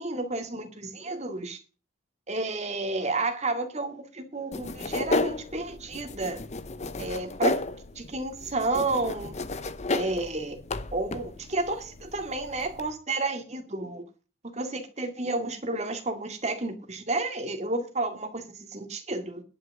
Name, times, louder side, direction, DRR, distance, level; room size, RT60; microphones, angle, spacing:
voice 1, 0.0-1.6 2.3-6.4 7.0-7.5 8.0-9.3 9.9-10.6 10.9-14.0 14.5-19.4, right 2 dB, 30° right, 6 dB, 2.1 m, -31 dB
sound 1, 4.5-12.9, left 2 dB, 30° left, 0.7 m, -33 dB
11.0 x 6.4 x 7.5 m, 0.33 s
head